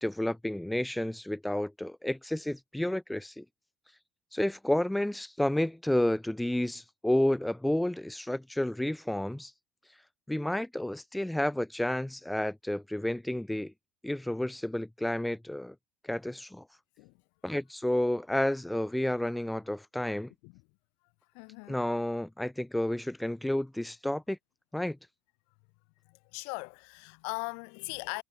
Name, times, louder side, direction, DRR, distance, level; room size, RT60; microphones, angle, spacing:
voice 1, 0.0-3.4 4.3-9.5 10.3-13.7 14.0-15.7 16.0-16.6 17.4-20.3 21.7-24.4 24.7-25.0, left 1 dB, 5° left, 1.8 m, -31 dB
voice 2, 21.3-21.8 26.0-28.2, left 40 dB or more, 65° left, 6.8 m, -39 dB
hypercardioid pair, 65°, 0 cm